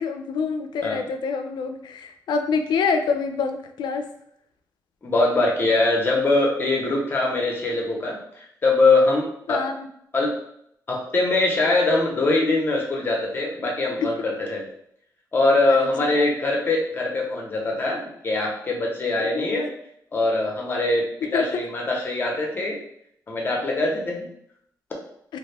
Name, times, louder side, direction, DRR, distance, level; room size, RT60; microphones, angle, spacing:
voice 1, 0.0-4.0 9.5-9.9 15.7-16.3 19.2-19.6 21.3-21.6, left 5 dB, 90° left, 7 dB, 0.3 m, -26 dB
voice 2, 5.0-9.6 10.1-10.3 10.9-14.6 15.3-19.7 20.1-22.8 23.3-24.3, left 2 dB, 30° left, -1 dB, 0.7 m, -22 dB
2.4 x 2.2 x 3.3 m, 0.72 s
wide cardioid pair, 155°, 7 cm